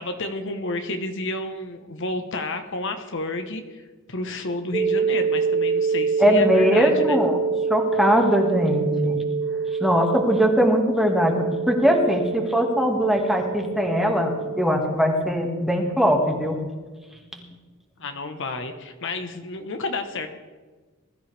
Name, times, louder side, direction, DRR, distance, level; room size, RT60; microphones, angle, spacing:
voice 1, 0.0-3.8 4.1-7.2 18.0-20.3, left 2 dB, 60° left, 6 dB, 1.2 m, -31 dB
sound 1, 4.7-14.7, right 5 dB, 25° right, 0.8 m, -26 dB
voice 2, 6.2-7.4 7.7-9.2 9.8-16.6 17.3-17.5, equal, ahead, 1 dB, 1.9 m, -21 dB
20.5 x 13.5 x 3.4 m, 1.3 s
head